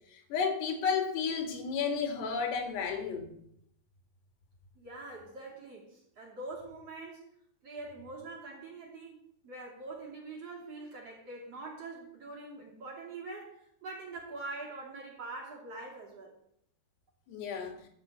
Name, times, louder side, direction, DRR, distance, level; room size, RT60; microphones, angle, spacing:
voice 1, 0.1-3.3 17.3-17.8, left 6 dB, 80° left, 5 dB, 4.0 m, -32 dB
voice 2, 4.8-7.3 7.6-9.2 9.4-16.3, right 2 dB, 40° right, -2 dB, 3.4 m, -44 dB
13.5 x 7.0 x 7.9 m, 0.70 s
omnidirectional pair, 4.8 m